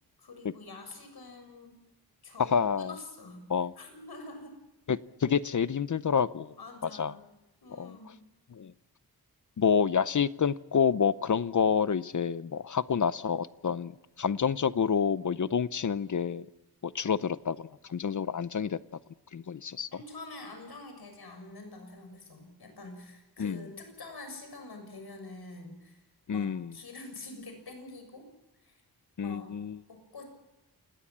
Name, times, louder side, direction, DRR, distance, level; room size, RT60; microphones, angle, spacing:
voice 1, 0.2-1.8 2.2-3.5 3.8-4.6 6.6-7.2 7.6-8.2 19.9-26.0 26.3-28.3 28.6-28.8 29.2-29.5 29.9-30.2, left 2 dB, 75° left, 6.9 m, -46 dB
voice 2, 2.4-3.0 3.5-3.7 4.9-6.6 7.0-7.1 7.8-8.0 8.6-8.7 9.6-13.9 14.2-16.5 16.8-18.8 19.3-19.9 23.4-23.6 26.3-26.7 29.2-29.8, left 6 dB, 50° left, 0.7 m, -28 dB
28.5 x 19.0 x 7.4 m
wide cardioid pair, 100°, 38 cm